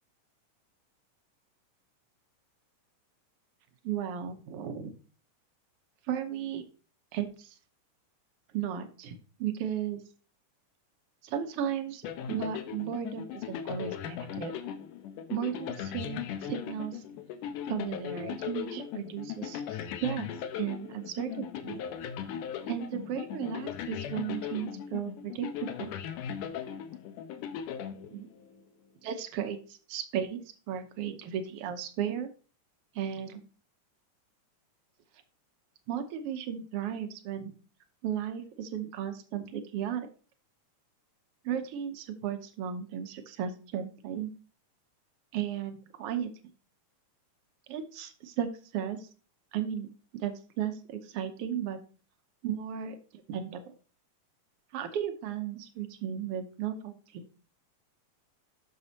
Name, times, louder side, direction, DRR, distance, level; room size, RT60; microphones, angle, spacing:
voice 1, 3.8-4.9 6.1-6.6 7.1-7.5 8.5-10.0 11.2-14.6 15.3-17.0 17.7-20.3 20.5-21.8 22.7-25.9 28.1-28.3 29.0-30.4 30.7-32.3 32.9-33.4 35.9-37.5 38.0-40.1 41.4-44.3 45.3-46.3 47.7-49.1 49.5-49.9 50.2-51.8 52.4-53.6 54.7-57.3, right 9 dB, 70° right, 8 dB, 1.4 m, -35 dB
sound 1, 12.0-28.6, left 9 dB, 85° left, 2.3 m, -38 dB
9.5 x 6.7 x 2.8 m, 0.38 s
omnidirectional pair, 3.6 m